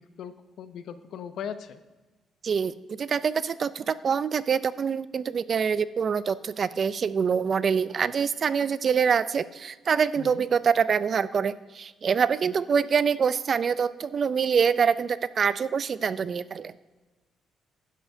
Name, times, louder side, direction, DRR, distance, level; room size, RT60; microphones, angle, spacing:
voice 1, 0.0-1.8 10.2-10.4, left 8 dB, 75° left, 11 dB, 0.6 m, -39 dB
voice 2, 2.4-16.7, right 6 dB, 50° right, 16 dB, 0.4 m, -25 dB
11.5 x 10.5 x 2.7 m, 1.2 s
cardioid pair, 90°, 0 cm